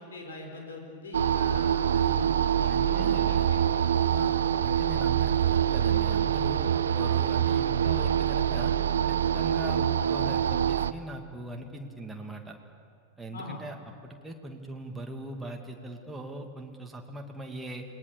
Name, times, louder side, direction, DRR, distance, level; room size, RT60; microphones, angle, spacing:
voice 1, 0.0-4.4 13.3-13.6, left 2 dB, 65° left, 3 dB, 5.0 m, -42 dB
sound 1, 1.1-10.9, right 9 dB, 65° right, 0.7 m, -25 dB
voice 2, 2.7-3.5 4.6-8.7 9.1-12.6 13.2-13.7 14.0-17.8, right 1 dB, 5° right, 1 dB, 2.4 m, -40 dB
28.0 x 21.0 x 7.0 m, 2.2 s
figure-of-eight pair, 90°, 0 cm